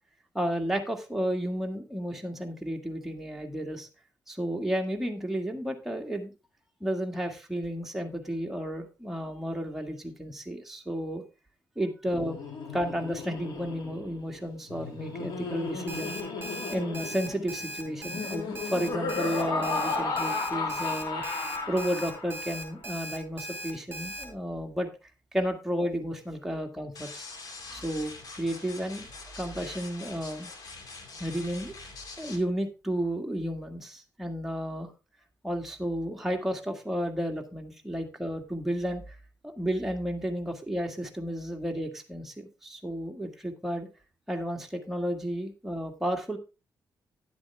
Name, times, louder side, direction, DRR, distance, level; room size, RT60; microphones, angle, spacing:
voice 1, 0.3-3.9 4.3-6.3 6.8-11.2 11.8-12.4 12.7-16.2 16.7-21.2 21.7-24.9 25.3-27.3 27.7-29.1 29.4-30.5 31.2-31.7 32.2-34.9 35.4-39.2 39.6-43.9 44.3-46.4, equal, 5° right, 2 dB, 1.8 m, -32 dB
Laughter, 12.1-22.6, left 3 dB, 85° left, 2.4 m, -34 dB
Alarm, 15.9-24.2, equal, 30° right, 3.5 m, -38 dB
sound 1, 26.9-32.4, left 3 dB, 65° left, 2.5 m, -44 dB
11.0 x 7.8 x 3.5 m, 0.30 s
cardioid pair, 115°, 7 cm